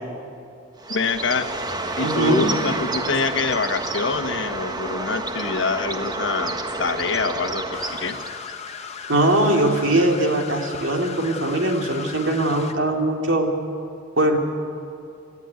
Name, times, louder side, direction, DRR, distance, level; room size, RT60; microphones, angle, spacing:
Bird, 0.8-8.5, right 2 dB, 20° right, 1.3 m, -29 dB
voice 1, 0.9-1.5 2.0-7.6 8.0-8.2, left 4 dB, 65° left, 8 dB, 1.3 m, -25 dB
voice 2, 2.0-2.5 9.1-13.5 14.2-14.4, right 1 dB, 75° right, 2 dB, 2.6 m, -21 dB
sound 1, 7.7-12.7, left 6 dB, 35° left, 1.4 m, -36 dB
29.0 x 13.5 x 9.5 m, 2.5 s
head